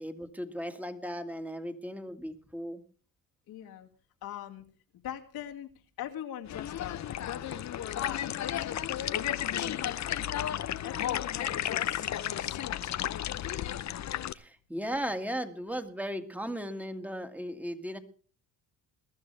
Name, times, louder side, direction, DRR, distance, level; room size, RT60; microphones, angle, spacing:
voice 1, 0.0-2.8 14.3-18.0, equal, 5° right, 7 dB, 2.0 m, -36 dB
voice 2, 3.5-3.9 4.2-4.6 5.0-5.7 6.0-9.2 9.5-10.0 10.3-12.9, left 10 dB, 75° left, 2 dB, 2.5 m, -41 dB
sound 1, 6.5-14.3, left 11 dB, 50° left, 0.8 m, -33 dB
21.5 x 12.5 x 3.4 m, 0.40 s
cardioid pair, 85°, 37 cm